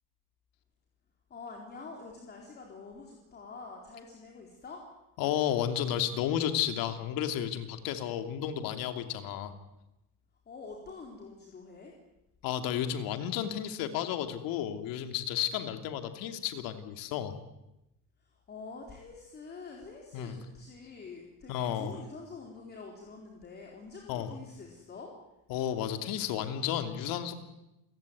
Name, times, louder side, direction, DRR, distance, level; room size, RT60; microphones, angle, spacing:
voice 1, 1.3-4.8 10.5-11.9 18.2-25.1, left 4 dB, 25° left, 1 dB, 4.1 m, -46 dB
voice 2, 5.2-9.5 12.4-17.3 20.1-20.4 21.5-21.9 24.1-24.3 25.5-27.3, left 10 dB, 65° left, 8 dB, 2.9 m, -32 dB
29.0 x 17.5 x 9.5 m, 0.94 s
cardioid pair, 150°, 37 cm